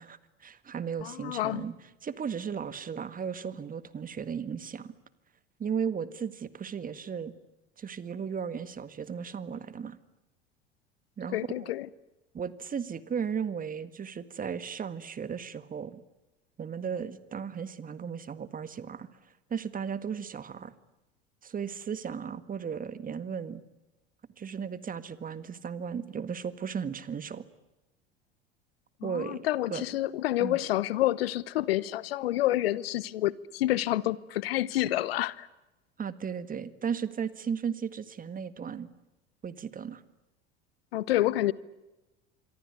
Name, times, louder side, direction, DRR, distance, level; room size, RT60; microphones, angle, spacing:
voice 1, 0.0-1.7 2.0-4.9 5.6-7.3 7.8-10.0 11.2-11.7 12.3-16.0 16.6-19.1 19.5-20.7 21.4-23.6 24.4-27.4 29.0-29.4 29.7-29.8 30.4-30.6 36.0-38.9 39.4-40.0, right 7 dB, 25° right, 1.8 m, -35 dB
voice 2, 1.0-1.6 11.3-11.9 29.0-35.5 40.9-41.5, left 15 dB, 70° left, 1.0 m, -28 dB
26.5 x 23.5 x 9.5 m
hypercardioid pair, 75°, 31 cm